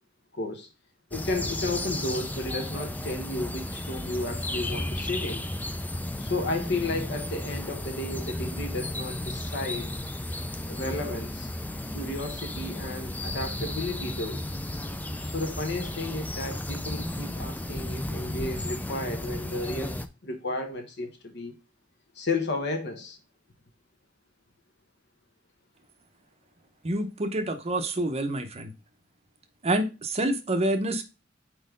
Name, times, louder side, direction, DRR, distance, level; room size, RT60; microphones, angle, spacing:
voice 1, 0.3-0.7 1.1-5.4 6.2-9.9 10.7-11.5 11.9-14.4 15.2-19.9 20.2-21.6 22.1-23.2, left 2 dB, 60° left, 1.2 m, -33 dB
sound 1, 1.1-20.1, left 1 dB, 10° left, 0.4 m, -34 dB
voice 2, 26.8-28.7 29.6-31.0, right 1 dB, 35° right, 0.7 m, -27 dB
4.7 x 4.3 x 5.1 m
head